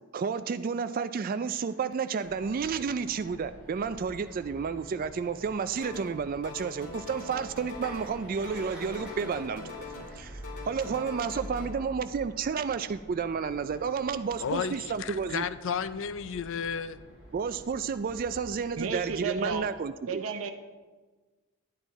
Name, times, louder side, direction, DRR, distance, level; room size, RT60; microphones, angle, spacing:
voice 1, 0.1-9.9 10.2-10.4 10.7-15.4 17.3-20.2, right 6 dB, 40° right, 0.3 m, -31 dB
sound 1, 1.2-18.1, right 1 dB, 5° right, 2.8 m, -55 dB
sound 2, 2.2-19.5, equal, 40° left, 3.6 m, -48 dB
sound 3, 5.8-6.2 6.4-8.2 8.4-10.2 10.4-11.7, left 4 dB, 75° left, 2.3 m, -42 dB
voice 2, 14.4-17.0, left 6 dB, 60° left, 0.4 m, -33 dB
voice 3, 18.8-19.7 20.1-20.5, right 5 dB, 65° right, 0.7 m, -32 dB
10.5 x 9.0 x 4.1 m
head